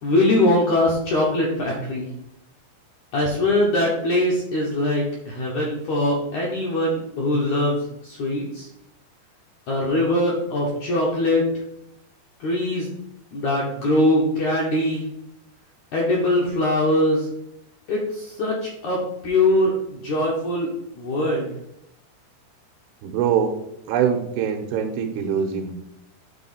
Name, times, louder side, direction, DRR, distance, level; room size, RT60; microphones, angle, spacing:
voice 1, 0.0-2.1 3.1-8.7 9.7-11.4 12.4-12.9 13.3-15.0 15.9-17.3 17.9-20.7 21.0-21.5, left 1 dB, 70° left, -3 dB, 1.8 m, -22 dB
voice 2, 23.0-25.7, right 7 dB, 80° right, 5 dB, 2.5 m, -23 dB
8.9 x 4.0 x 4.2 m, 0.82 s
omnidirectional pair, 4.8 m